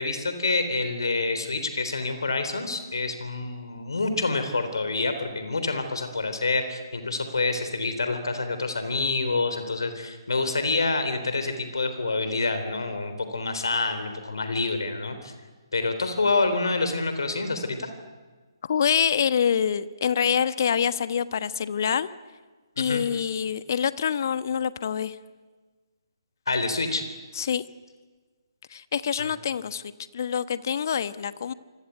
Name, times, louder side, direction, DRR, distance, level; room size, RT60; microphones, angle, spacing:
voice 1, 0.0-15.3 15.7-17.9 22.8-23.0 26.5-27.0 29.2-29.3, left 3 dB, 65° left, 9 dB, 3.8 m, -27 dB
voice 2, 18.6-22.1 22.8-25.2 27.3-27.6 28.7-29.8 30.1-31.5, left 7 dB, 45° left, 14 dB, 1.2 m, -26 dB
27.0 x 25.0 x 8.3 m, 1.4 s
figure-of-eight pair, 135°, 2 cm